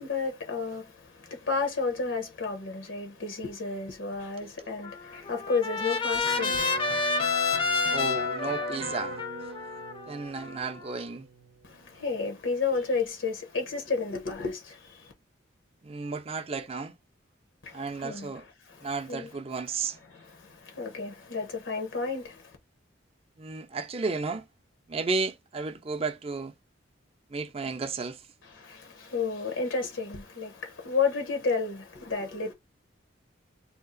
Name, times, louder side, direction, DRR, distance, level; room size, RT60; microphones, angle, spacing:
voice 1, 0.0-6.8 11.6-15.1 17.6-18.3 18.7-19.3 20.1-22.6 28.6-32.5, left 4 dB, 80° left, 0.9 m, -32 dB
voice 2, 4.4-4.7 7.9-9.5 10.1-11.3 15.8-17.0 17.7-18.4 18.8-20.0 23.4-24.5 24.9-26.5 27.3-28.3, right 4 dB, 30° right, 0.4 m, -33 dB
Trumpet, 4.8-11.0, left 4 dB, 25° left, 0.5 m, -30 dB
Electric guitar, 6.2-12.3, right 4 dB, 85° right, 0.6 m, -40 dB
2.8 x 2.4 x 3.8 m
head